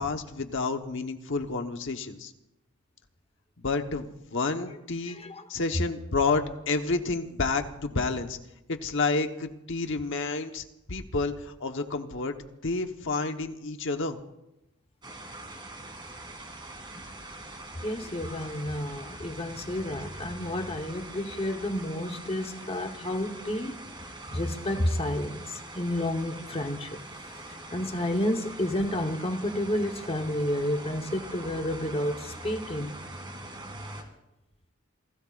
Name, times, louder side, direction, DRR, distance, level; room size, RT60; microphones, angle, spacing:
voice 1, 0.0-2.3 3.6-5.2 5.5-8.4 8.7-12.3 12.6-14.2, left 3 dB, 65° left, 1.1 m, -30 dB
voice 2, 5.1-5.4 17.8-23.8 24.3-33.0, left 1 dB, 30° left, 1.1 m, -31 dB
sound 1, 15.0-34.0, right 2 dB, 25° right, 2.4 m, -43 dB
29.0 x 17.0 x 2.5 m
head